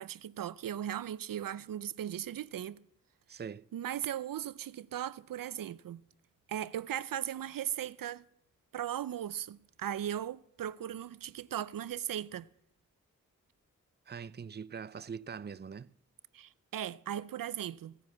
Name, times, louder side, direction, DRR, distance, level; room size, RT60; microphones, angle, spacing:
voice 1, 0.0-2.8 3.3-3.4 3.7-6.0 6.5-8.2 8.7-12.5 16.3-18.0, right 10 dB, 80° right, 0.5 m, -38 dB
voice 2, 3.3-3.7 14.1-15.9, right 6 dB, 30° right, 0.5 m, -42 dB
16.5 x 7.6 x 8.3 m
cardioid pair, 40°, 33 cm